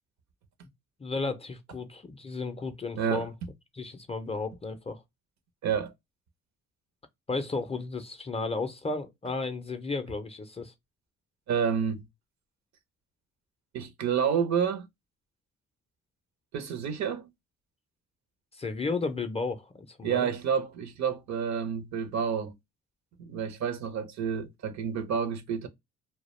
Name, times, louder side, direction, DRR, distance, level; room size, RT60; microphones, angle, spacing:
voice 1, 1.0-3.3 3.7-5.0 7.3-10.7 18.5-20.3, left 3 dB, 20° left, 0.4 m, -33 dB
voice 2, 3.0-3.3 5.6-5.9 11.5-12.0 13.7-14.9 16.5-17.3 20.0-22.6 23.2-25.7, right 7 dB, 65° right, 0.6 m, -29 dB
2.3 x 2.1 x 3.0 m
cardioid pair, 90°, 30 cm